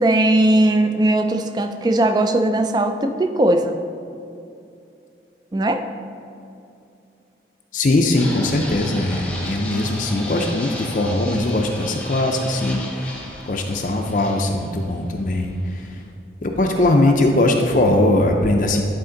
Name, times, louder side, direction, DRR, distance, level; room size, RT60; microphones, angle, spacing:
voice 1, 0.0-3.7 5.5-5.8 16.8-17.2, right 1 dB, 25° right, 7 dB, 0.3 m, -19 dB
voice 2, 7.7-13.2 13.5-16.0 16.4-18.8, left 2 dB, 45° left, 3 dB, 0.4 m, -20 dB
Fixed-wing aircraft airplane, 8.2-16.1, left 1 dB, 5° left, 0.7 m, -35 dB
10.5 x 4.2 x 3.8 m, 2.6 s
head